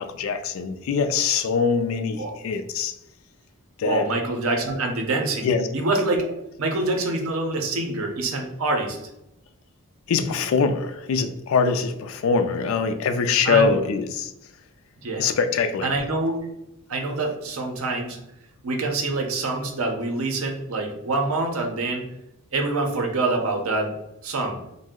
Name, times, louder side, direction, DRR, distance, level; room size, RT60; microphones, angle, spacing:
voice 1, 0.0-2.9 3.8-4.0 5.4-5.7 10.1-14.3 15.2-15.9, left 5 dB, 65° left, 9 dB, 0.3 m, -23 dB
voice 2, 3.8-6.3 6.6-9.0 13.4-13.8 15.0-15.3 15.8-16.5 16.9-18.2 18.6-22.1 22.5-23.9 24.2-24.6, right 2 dB, 70° right, 2 dB, 0.6 m, -25 dB
2.6 x 2.0 x 3.5 m, 0.84 s
head